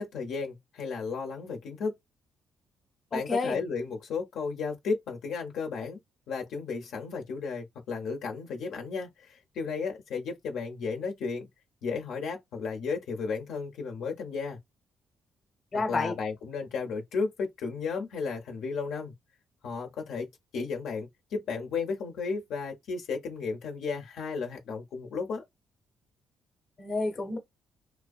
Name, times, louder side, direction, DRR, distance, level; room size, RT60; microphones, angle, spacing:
voice 1, 0.0-1.9 3.1-6.0 6.3-11.5 11.8-14.6 15.7-19.2 19.6-20.3 20.5-25.4, left 5 dB, 80° left, 0.6 m, -34 dB
voice 2, 3.1-3.6 15.7-16.2 26.8-27.4, left 3 dB, 40° left, 0.8 m, -30 dB
2.5 x 2.1 x 2.3 m
cardioid pair, 90°, 0 cm